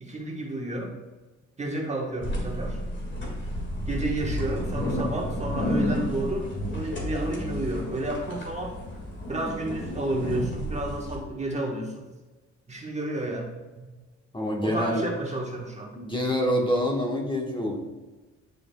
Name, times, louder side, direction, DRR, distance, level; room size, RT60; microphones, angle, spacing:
voice 1, 0.0-0.9 1.6-2.8 3.9-8.7 9.3-12.0 12.7-13.9 14.6-15.9, right 2 dB, 20° right, 0 dB, 1.2 m, -31 dB
sound 1, 2.2-11.2, left 1 dB, 40° left, 2.0 m, -31 dB
voice 2, 14.3-15.0 15.9-17.8, equal, 15° left, -1 dB, 1.2 m, -26 dB
9.4 x 4.8 x 2.2 m, 1.2 s
cardioid pair, 90°, 30 cm